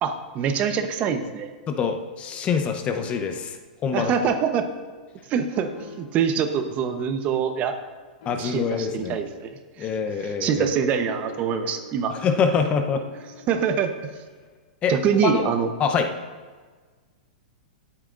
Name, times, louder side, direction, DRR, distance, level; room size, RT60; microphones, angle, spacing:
voice 1, 0.0-1.5 3.9-4.7 5.3-5.7 6.0-7.8 8.4-9.5 9.8-9.9 10.2-12.2 13.5-13.9 14.9-15.7, right 7 dB, 30° right, 8 dB, 0.9 m, -24 dB
voice 2, 1.7-3.6 3.8-4.3 8.3-9.2 9.8-10.7 12.1-13.0 14.8-14.9 15.2-15.5 15.8-16.1, left 6 dB, 25° left, 6 dB, 0.8 m, -25 dB
sound 1, 2.9-3.7 5.5-6.3 8.2-9.0 10.9-13.6, left 1 dB, 65° left, 3.8 m, -43 dB
19.5 x 8.7 x 2.6 m, 1.5 s
hypercardioid pair, 135°, 5 cm